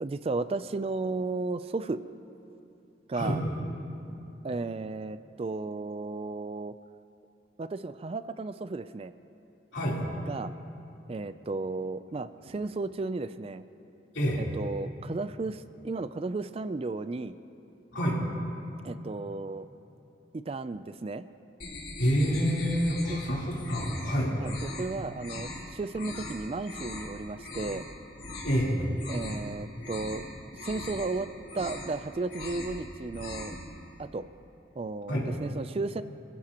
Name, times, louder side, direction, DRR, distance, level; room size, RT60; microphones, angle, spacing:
voice 1, 0.0-2.0 3.1-3.4 4.4-6.7 7.6-9.1 10.3-10.5 11.1-13.6 14.3-17.3 18.8-19.7 20.3-21.3 23.1-23.2 24.4-27.9 29.1-30.3 30.5-33.6 34.0-34.3 34.8-36.0, right 3 dB, 30° right, 13 dB, 0.4 m, -34 dB
sound 1, 21.6-23.3 23.6-24.1 24.4-24.8 25.2-25.6 25.9-26.3 26.6-27.1 27.4-27.8 28.2-28.6 28.9-29.5 29.8-30.2 30.5-31.1 31.4-31.9 32.2-32.7 33.0-33.6, left 2 dB, 50° left, 3.4 m, -40 dB
voice 2, 22.0-24.3 28.4-28.9 35.1-35.3, equal, 80° left, -5 dB, 3.5 m, -27 dB
27.5 x 15.5 x 2.9 m, 2.8 s
head